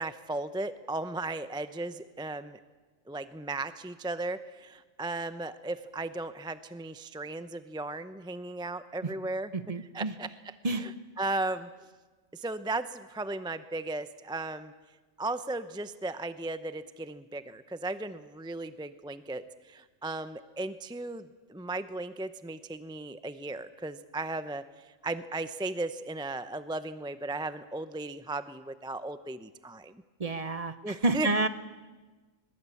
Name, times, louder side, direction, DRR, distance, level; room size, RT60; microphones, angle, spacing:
voice 1, 0.0-2.6 3.1-9.5 9.9-10.3 10.8-10.9 11.2-11.7 12.3-14.7 15.2-30.0 30.8-31.3, right 2 dB, 5° right, 12 dB, 0.3 m, -36 dB
voice 2, 9.5-10.1 10.6-10.9 30.2-31.5, right 2 dB, 30° right, 12 dB, 1.0 m, -29 dB
21.0 x 21.0 x 8.4 m, 1.3 s
omnidirectional pair, 1.3 m